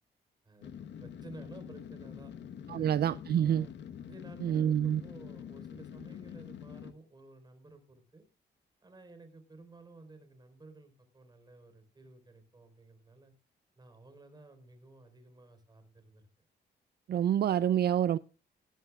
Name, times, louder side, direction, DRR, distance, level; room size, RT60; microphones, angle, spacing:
sound 1, 0.6-6.9, left 8 dB, 75° left, 1.2 m, -45 dB
voice 1, 1.0-2.3 2.7-2.9 3.3-3.7 4.0-8.3 8.8-13.3 13.8-16.2, right 2 dB, 20° right, 4.3 m, -53 dB
voice 2, 2.7-3.7 4.4-5.0 17.1-18.2, right 10 dB, 60° right, 0.5 m, -27 dB
19.0 x 11.0 x 2.4 m
cardioid pair, 105°, 19 cm